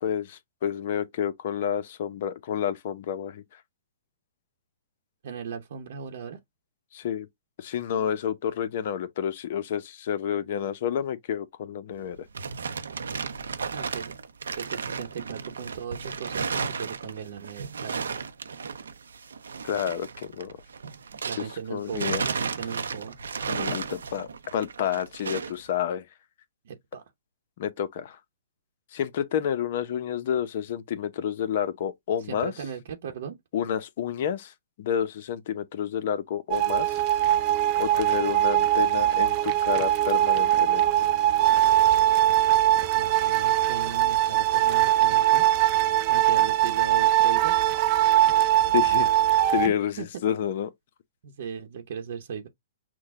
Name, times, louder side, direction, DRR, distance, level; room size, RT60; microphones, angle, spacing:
voice 1, 0.0-3.6 6.9-7.3 7.6-12.2 19.6-20.6 21.4-21.5 21.7-22.2 23.5-26.1 27.6-28.2 28.9-32.5 33.5-37.0 37.8-40.9 48.7-49.1 49.5-50.7, left 9 dB, 55° left, 0.7 m, -29 dB
voice 2, 5.2-6.4 13.7-14.1 14.5-18.2 21.1-23.2 26.6-27.0 32.3-33.4 42.9-45.5 46.1-47.6 50.0-50.1 51.2-52.5, right 7 dB, 60° right, 0.9 m, -37 dB
sound 1, 12.0-21.6 21.9-25.6, right 5 dB, 90° right, 0.7 m, -34 dB
sound 2, 36.5-49.7, right 13 dB, 35° right, 0.6 m, -21 dB
6.2 x 2.2 x 3.6 m
hypercardioid pair, 145°, 0 cm